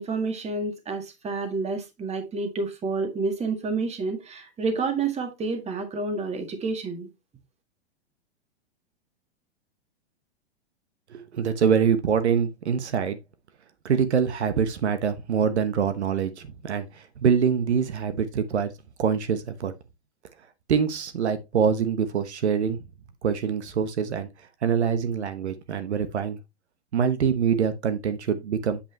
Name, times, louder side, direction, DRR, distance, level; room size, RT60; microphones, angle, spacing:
voice 1, 0.0-7.1, right 3 dB, 20° right, 1.7 m, -29 dB
voice 2, 11.1-13.2 13.8-18.7 19.0-19.7 20.7-22.8 23.2-24.3 24.6-26.4 26.9-28.8, right 7 dB, 85° right, 1.1 m, -24 dB
8.4 x 5.2 x 3.2 m
hypercardioid pair, 115°, 33 cm